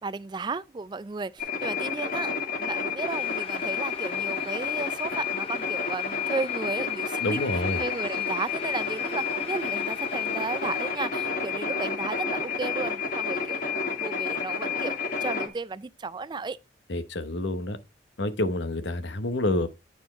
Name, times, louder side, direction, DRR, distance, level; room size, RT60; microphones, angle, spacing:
voice 1, 0.0-7.5 7.8-16.6, right 4 dB, 25° right, 0.3 m, -34 dB
sound 1, 1.4-15.5, left 6 dB, 50° left, 2.0 m, -30 dB
sound 2, 3.1-10.9, left 4 dB, 30° left, 1.0 m, -43 dB
voice 2, 7.2-7.8 16.9-17.8 18.2-19.7, left 1 dB, 85° left, 1.0 m, -28 dB
9.5 x 4.4 x 4.4 m
head